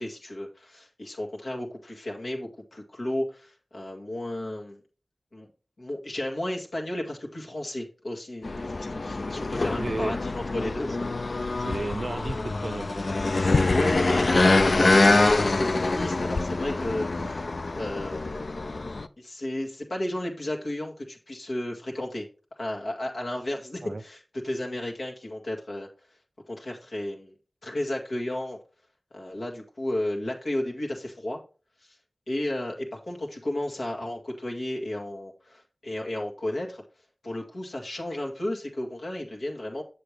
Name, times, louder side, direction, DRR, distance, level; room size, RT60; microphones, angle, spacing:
voice 1, 0.0-4.8 5.3-5.5 5.8-11.1 13.3-17.5 17.8-18.4 19.2-22.3 22.6-26.2 26.5-27.3 27.6-28.6 29.1-31.4 31.8-32.0 32.3-36.8 37.2-39.8, left 1 dB, 90° left, 1.9 m, -33 dB
sound 1, 8.4-19.1, left 2 dB, 70° left, 0.4 m, -25 dB
voice 2, 9.8-10.1 11.6-13.1 17.2-17.3 23.8-24.0, right 2 dB, 65° right, 0.5 m, -34 dB
7.9 x 6.8 x 3.3 m
wide cardioid pair, 40°, 0 cm